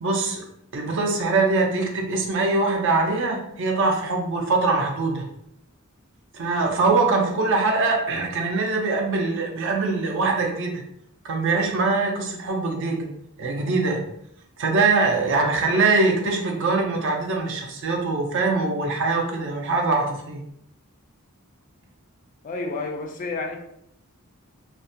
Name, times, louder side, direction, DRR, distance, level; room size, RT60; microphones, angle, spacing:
voice 1, 0.0-0.4 0.7-5.3 6.3-10.8 11.2-13.1 13.4-14.0 14.6-20.4, right 3 dB, 60° right, 0.5 m, -23 dB
voice 2, 22.4-23.6, left 3 dB, 35° left, 0.3 m, -30 dB
2.5 x 2.1 x 2.6 m
head